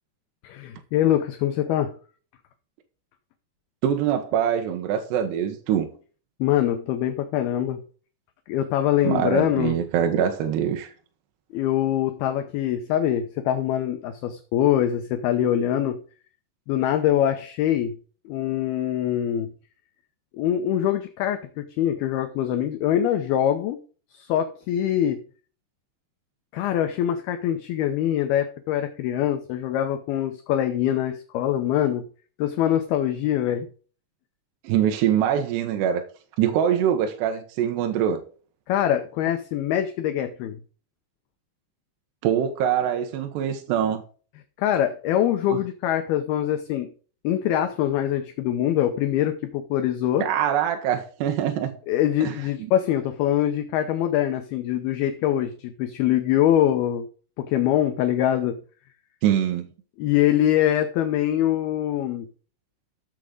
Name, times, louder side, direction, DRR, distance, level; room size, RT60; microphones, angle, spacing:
voice 1, 0.4-1.9 6.4-7.8 8.5-9.8 11.5-16.0 16.7-18.0 18.3-19.5 20.3-23.8 24.1-25.2 26.5-32.1 32.4-33.7 38.7-40.6 44.6-46.9 47.2-50.3 51.9-57.1 57.4-58.6 60.0-62.3, left 11 dB, 75° left, 2.4 m, -23 dB
voice 2, 3.8-5.9 9.0-10.9 34.6-36.0 36.4-38.2 42.2-44.0 45.5-45.6 50.2-51.8 52.2-52.3 59.2-59.7, right 9 dB, 75° right, 3.1 m, -23 dB
13.5 x 7.4 x 3.9 m
omnidirectional pair, 5.2 m